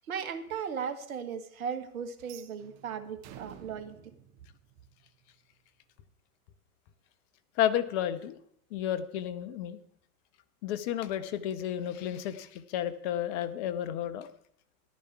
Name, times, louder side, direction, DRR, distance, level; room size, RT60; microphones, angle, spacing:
voice 1, 0.1-4.1, right 7 dB, 70° right, 11 dB, 1.7 m, -37 dB
sound 1, 2.2-5.3, right 10 dB, 35° right, 1.4 m, -52 dB
voice 2, 7.6-8.3 8.7-9.8 10.6-14.3, left 11 dB, 45° left, 13 dB, 1.3 m, -32 dB
14.0 x 12.0 x 4.7 m, 0.66 s
hypercardioid pair, 105°, 45 cm